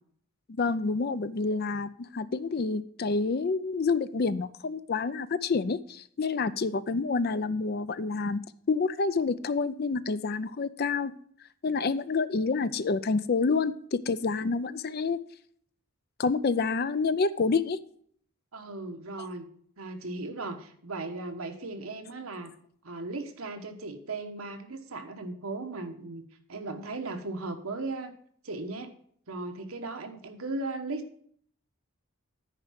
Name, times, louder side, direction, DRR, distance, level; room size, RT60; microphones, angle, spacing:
voice 1, 0.5-8.4 8.7-11.1 11.6-15.2 16.2-17.8, left 4 dB, 45° left, 13 dB, 0.4 m, -28 dB
voice 2, 18.5-19.5 19.8-22.5 22.8-26.2 26.5-28.1 28.4-28.9 29.3-31.1, right 2 dB, 80° right, 6 dB, 1.2 m, -37 dB
9.9 x 4.6 x 7.4 m, 0.62 s
head